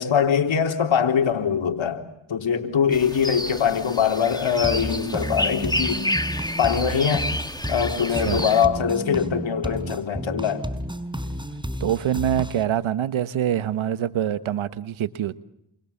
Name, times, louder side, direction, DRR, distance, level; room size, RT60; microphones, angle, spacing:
voice 1, 0.0-6.0 6.6-7.3 7.7-10.7, left 7 dB, 70° left, 4 dB, 3.7 m, -22 dB
sound 1, 2.9-8.7, left 1 dB, 10° left, 2.4 m, -30 dB
sound 2, 4.6-12.6, equal, 10° right, 5.2 m, -31 dB
voice 2, 8.1-8.4 11.8-15.3, right 10 dB, 80° right, 13 dB, 1.4 m, -25 dB
28.5 x 28.0 x 7.3 m, 0.79 s
supercardioid pair, 40°, 47 cm